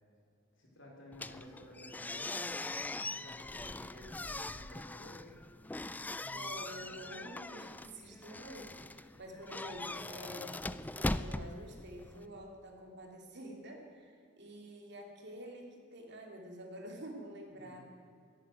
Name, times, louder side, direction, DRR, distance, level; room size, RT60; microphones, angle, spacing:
voice 1, 0.6-2.5 2.9-5.3 17.5-17.7, equal, 65° left, -1 dB, 4.4 m, -53 dB
sound 1, 1.1-12.3, left 2 dB, 10° left, 0.3 m, -41 dB
voice 2, 6.3-17.9, equal, 60° right, 1 dB, 2.8 m, -48 dB
13.0 x 11.0 x 9.2 m, 2.3 s
head